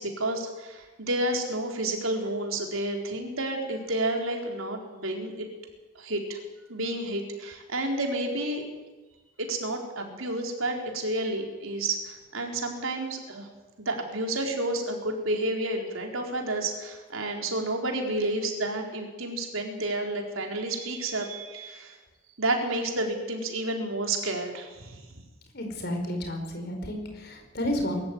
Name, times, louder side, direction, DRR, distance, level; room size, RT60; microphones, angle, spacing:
voice 1, 0.0-5.5 6.0-6.4 6.7-8.6 9.4-13.5 13.8-21.9 22.4-25.0, right 1 dB, 85° right, 2 dB, 4.3 m, -30 dB
voice 2, 25.5-28.0, left 1 dB, 50° left, 4 dB, 5.1 m, -31 dB
22.5 x 14.0 x 9.5 m, 1.2 s
head